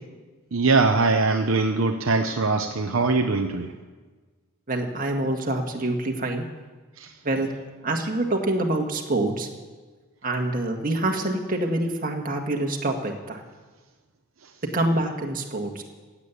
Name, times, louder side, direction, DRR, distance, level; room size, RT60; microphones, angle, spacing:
voice 1, 0.5-3.7 7.0-7.1, right 3 dB, 65° right, 4 dB, 0.8 m, -22 dB
voice 2, 4.7-6.4 7.2-7.5 7.8-9.5 10.2-13.4 14.7-15.8, right 2 dB, 40° right, 2 dB, 1.8 m, -26 dB
16.0 x 8.6 x 8.5 m, 1.3 s
head